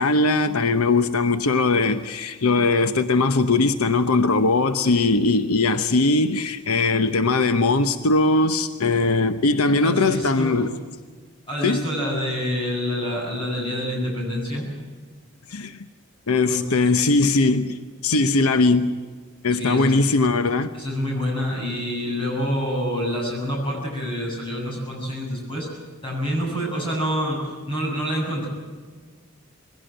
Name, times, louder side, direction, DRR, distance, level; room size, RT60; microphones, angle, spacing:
voice 1, 0.0-10.7 11.6-11.8 15.5-15.8 16.3-17.8 18.0-18.9 19.4-20.7, left 3 dB, 85° left, 10 dB, 0.9 m, -20 dB
voice 2, 9.8-10.7 11.5-14.7 16.5-16.6 17.0-17.1 19.5-19.9 20.7-25.7 26.0-28.5, equal, 25° left, -2 dB, 7.8 m, -27 dB
21.5 x 16.5 x 9.1 m, 1.5 s
head